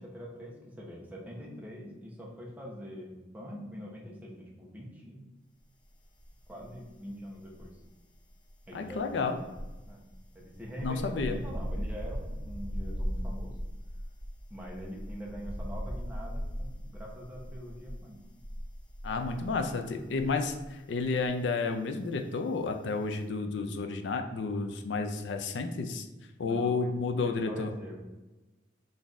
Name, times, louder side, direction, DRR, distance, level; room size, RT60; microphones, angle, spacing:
voice 1, 0.0-5.3 6.5-7.7 8.7-9.3 9.9-10.0 10.3-13.5 14.5-18.2 26.4-26.9 27.2-27.9, equal, 10° right, -3 dB, 0.9 m, -44 dB
sound 1, 6.1-6.9 7.2-20.7 21.0-21.3, equal, 25° left, 0.6 m, -38 dB
voice 2, 8.7-9.4 10.8-11.4 19.0-26.1 26.4-27.7, left 4 dB, 75° left, 6 dB, 0.4 m, -31 dB
4.0 x 2.7 x 4.6 m, 1.1 s
head